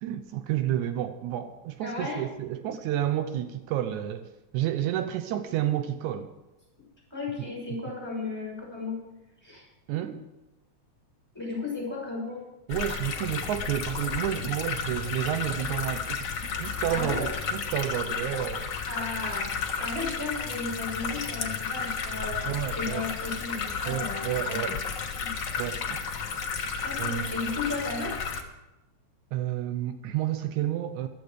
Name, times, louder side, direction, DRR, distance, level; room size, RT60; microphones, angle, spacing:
voice 1, 0.0-6.3 7.7-7.8 9.9-10.2 12.7-18.7 22.4-23.1 23.9-24.8 25.6-26.0 27.0-27.4 29.3-31.1, right 12 dB, 80° right, 10 dB, 2.1 m, -30 dB
voice 2, 1.8-2.2 7.1-9.0 9.4-9.6 11.3-12.5 16.9-17.3 18.9-19.5 19.8-22.5 22.7-24.7 25.2-25.3 26.8-28.2, left 3 dB, 5° left, -3 dB, 6.1 m, -34 dB
sound 1, 12.7-28.4, left 6 dB, 55° left, 1.3 m, -32 dB
15.0 x 12.0 x 4.9 m, 1.0 s
omnidirectional pair, 3.5 m